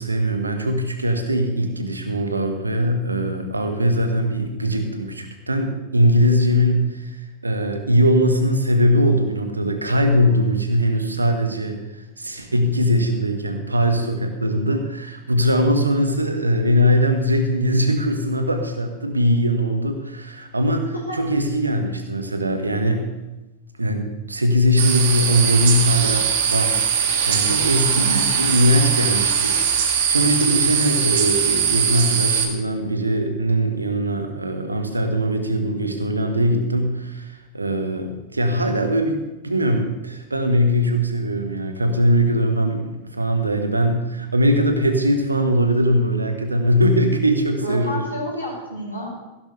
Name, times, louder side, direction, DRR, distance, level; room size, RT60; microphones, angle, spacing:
voice 1, 0.0-7.2 7.4-23.0 23.8-39.2 39.4-48.1, equal, 80° right, 6 dB, 1.4 m, -21 dB
sound 1, 24.8-32.5, right 7 dB, 55° right, 1.8 m, -20 dB
voice 2, 27.9-28.3 47.6-49.1, equal, 90° left, -8 dB, 4.0 m, -30 dB
15.5 x 12.5 x 3.4 m, 1.0 s
figure-of-eight pair, 90°, 0 cm